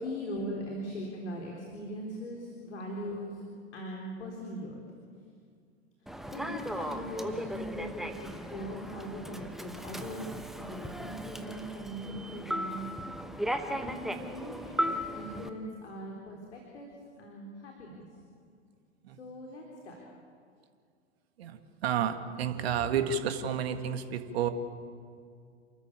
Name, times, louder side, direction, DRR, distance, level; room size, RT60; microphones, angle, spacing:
voice 1, 0.0-3.4 3.7-4.8 6.3-12.9 13.6-16.9 17.2-18.1 19.2-20.0, equal, 70° left, 0 dB, 3.9 m, -40 dB
Human voice / Subway metro underground, 6.1-15.5, equal, ahead, 1.0 m, -37 dB
voice 2, 21.4-24.5, right 8 dB, 60° right, 8 dB, 1.8 m, -31 dB
28.0 x 13.5 x 8.9 m, 2.2 s
figure-of-eight pair, 100°, 36 cm